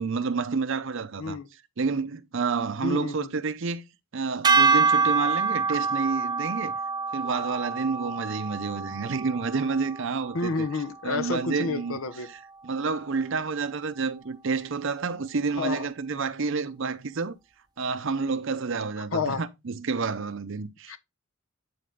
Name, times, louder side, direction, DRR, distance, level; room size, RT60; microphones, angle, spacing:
voice 1, 0.0-1.4 1.8-3.8 4.1-6.7 7.1-10.7 11.0-12.0 12.3-17.3 17.8-21.0, right 4 dB, 65° right, 0.7 m, -29 dB
voice 2, 2.8-3.3 10.3-12.3 15.6-15.9 19.1-19.4 20.9-21.0, left 4 dB, 85° left, 0.9 m, -30 dB
sound 1, 4.4-10.8, right 4 dB, 20° right, 0.6 m, -26 dB
9.7 x 4.3 x 3.7 m
head